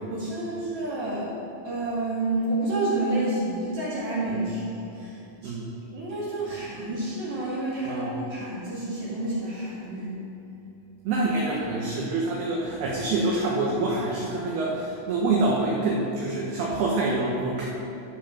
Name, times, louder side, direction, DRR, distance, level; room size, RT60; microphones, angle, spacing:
voice 1, 0.1-1.3 1.6-5.6 5.9-10.2 11.1-11.2, right 2 dB, 50° right, -9 dB, 2.3 m, -29 dB
voice 2, 7.9-8.2 11.1-17.7, right 2 dB, 75° right, -3 dB, 2.3 m, -26 dB
13.5 x 5.1 x 5.7 m, 2.9 s
omnidirectional pair, 5.8 m